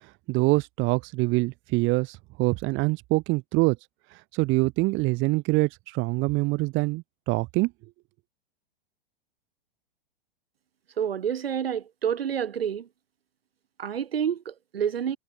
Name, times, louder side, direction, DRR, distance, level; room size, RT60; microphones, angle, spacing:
voice 1, 0.3-3.8 4.1-7.7, right 23 dB, 40° right, 5.2 m, -25 dB
voice 2, 11.0-12.9 13.8-15.2, right 8 dB, 75° right, 7.4 m, -28 dB
hypercardioid pair, 105°, 30 cm